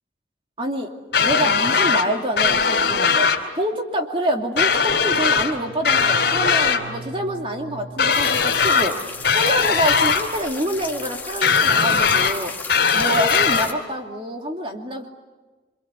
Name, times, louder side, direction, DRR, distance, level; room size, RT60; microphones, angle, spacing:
voice 1, 0.6-0.9 1.2-3.3 3.5-12.5 12.9-15.1, equal, 30° right, 2 dB, 2.8 m, -26 dB
sound 1, 1.1-2.1 2.4-3.4 4.6-5.5 5.8-6.8 8.0-8.9 9.2-10.2 11.4-12.3 12.7-13.7, left 5 dB, 60° left, 3.5 m, -19 dB
sound 2, 5.1-11.1 11.4-11.9 12.2-12.5, right 2 dB, 85° right, 3.8 m, -42 dB
sound 3, 8.1-13.7, left 4 dB, 10° left, 1.9 m, -34 dB
27.5 x 25.0 x 8.2 m, 1.3 s
head